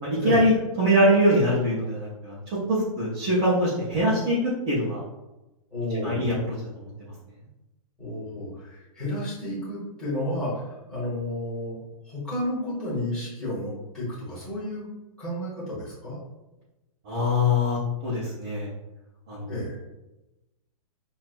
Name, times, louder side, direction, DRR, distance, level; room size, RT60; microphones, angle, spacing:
voice 1, 0.0-2.4 2.7-5.0 6.0-6.3 6.8-6.9 17.1-18.7 19.3-19.5, equal, 15° right, -8 dB, 0.3 m, -23 dB
voice 2, 5.7-6.5 8.0-11.8 12.0-14.8 15.2-16.2 19.5-19.7, left 1 dB, 5° left, -11 dB, 1.1 m, -31 dB
5.7 x 2.2 x 2.4 m, 1.0 s
hypercardioid pair, 180°, 19 cm